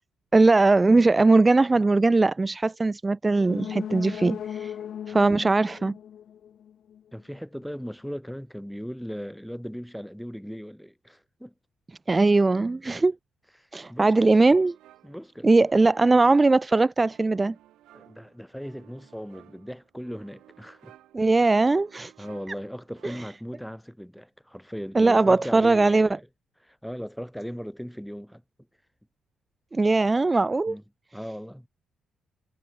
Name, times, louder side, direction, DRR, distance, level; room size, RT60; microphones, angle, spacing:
voice 1, 0.3-4.7 5.1-5.9 12.1-13.1 13.7-14.7 15.4-17.6 21.1-22.1 23.0-23.1 25.0-26.1 29.7-30.8, right 3 dB, 20° right, 0.4 m, -20 dB
sound 1, 3.3-7.0 7.3-7.4, left 9 dB, 65° left, 1.6 m, -37 dB
voice 2, 7.1-11.5 13.6-14.4 15.0-15.5 17.9-21.0 22.2-26.3 26.6-28.4 30.7-30.8 31.1-31.7, equal, ahead, 2.2 m, -38 dB
sound 2, 14.0-23.5, right 14 dB, 85° right, 6.7 m, -57 dB
cardioid pair, 90°, 0 cm